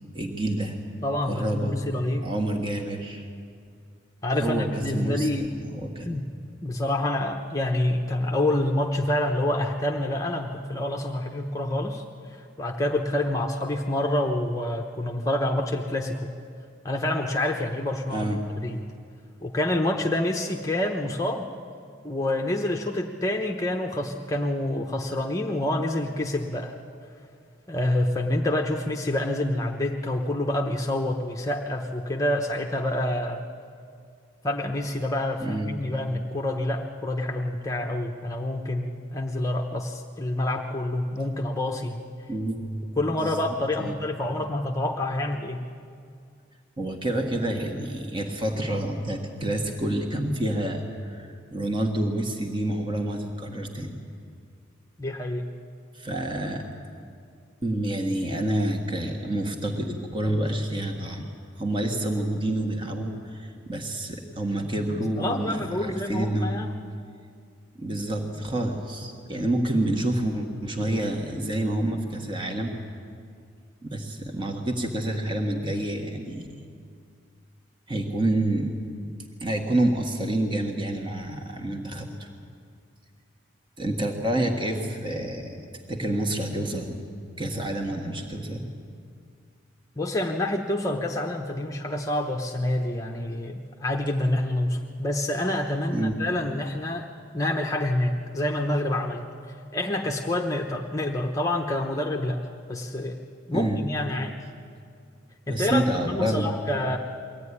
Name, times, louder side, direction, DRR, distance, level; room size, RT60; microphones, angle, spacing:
voice 1, 0.1-0.8 1.3-1.8 2.2-3.2 4.4-6.1 18.1-18.4 35.4-35.7 42.3-44.0 46.8-53.9 55.9-56.7 57.6-61.3 61.6-66.6 67.7-72.7 73.8-76.5 77.9-78.7 79.4-82.3 83.8-85.6 85.9-87.0 87.4-88.7 95.9-96.1 103.5-103.8 105.5-106.5, right 1 dB, 25° right, 3 dB, 1.6 m, -28 dB
voice 2, 1.0-2.3 4.2-5.5 6.0-6.2 6.6-12.0 12.3-16.3 16.8-18.3 18.6-18.8 19.4-21.5 22.0-26.8 27.7-33.5 34.4-42.0 43.0-45.6 55.0-55.5 65.2-66.8 90.0-97.1 97.3-99.2 99.7-102.4 102.7-103.2 103.5-104.4 105.5-107.0, left 1 dB, 15° left, 1 dB, 0.8 m, -27 dB
23.0 x 16.0 x 9.8 m, 2.4 s
head